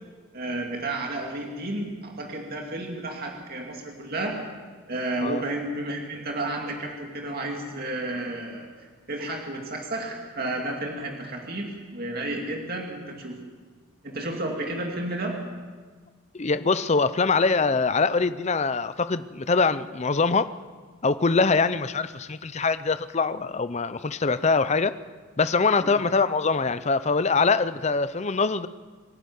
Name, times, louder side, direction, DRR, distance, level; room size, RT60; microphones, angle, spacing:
voice 1, 0.3-4.4 4.9-13.4 14.0-15.4 25.8-25.9, right 2 dB, 45° right, 1 dB, 2.4 m, -32 dB
voice 2, 16.3-20.5 21.0-24.9 25.4-28.7, left 4 dB, 30° left, 13 dB, 0.6 m, -23 dB
24.5 x 11.0 x 9.5 m, 1.5 s
head